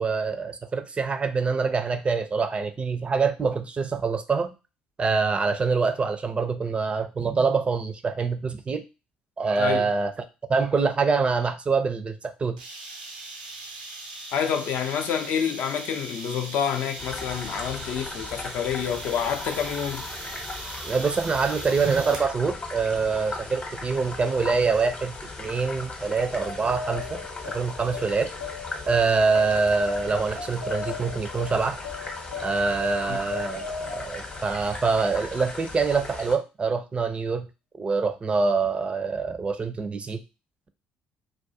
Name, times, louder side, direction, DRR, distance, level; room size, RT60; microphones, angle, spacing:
voice 1, 0.0-4.5 5.0-8.8 9.4-10.1 10.5-12.6 20.8-28.3 28.9-31.8 32.4-37.5 37.8-40.2, right 4 dB, 30° right, 0.4 m, -25 dB
voice 2, 9.6-9.9 14.3-20.0 33.0-33.2, left 8 dB, 55° left, 0.4 m, -28 dB
sound 1, 12.6-22.3, right 2 dB, 90° right, 0.4 m, -40 dB
sound 2, 17.0-36.4, left 3 dB, 30° left, 0.7 m, -38 dB
sound 3, 26.1-35.1, left 5 dB, 90° left, 0.7 m, -38 dB
2.3 x 2.1 x 2.6 m
figure-of-eight pair, 55°, 4 cm